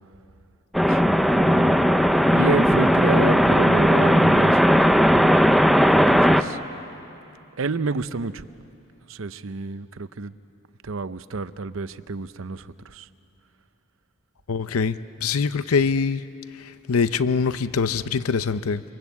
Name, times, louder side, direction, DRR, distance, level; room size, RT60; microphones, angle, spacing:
sound 1, 0.7-6.4, equal, ahead, 0.5 m, -17 dB
voice 1, 0.8-1.9 2.3-5.4 6.1-6.6 7.6-8.5 9.1-10.3 10.8-13.1, right 3 dB, 70° right, 14 dB, 0.7 m, -30 dB
voice 2, 14.5-16.2 16.6-18.8, left 5 dB, 90° left, 13 dB, 0.6 m, -24 dB
27.0 x 25.0 x 8.3 m, 2.9 s
head